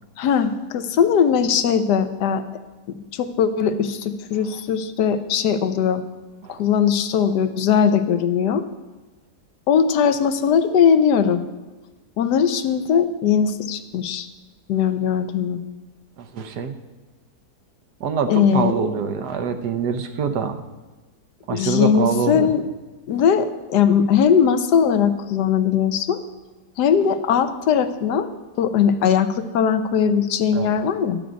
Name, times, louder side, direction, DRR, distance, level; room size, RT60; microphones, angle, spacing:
voice 1, 0.2-2.4 3.1-6.0 6.5-8.6 9.7-11.4 12.2-14.3 14.7-15.6 18.3-18.7 21.5-22.6 23.1-26.2 26.8-28.3 28.6-31.2, left 7 dB, 80° left, 10 dB, 1.3 m, -19 dB
voice 2, 16.2-16.8 18.0-20.6 21.5-22.5 30.5-30.7, right 6 dB, 80° right, 8 dB, 1.4 m, -25 dB
12.5 x 7.9 x 5.1 m, 1.2 s
omnidirectional pair, 1.7 m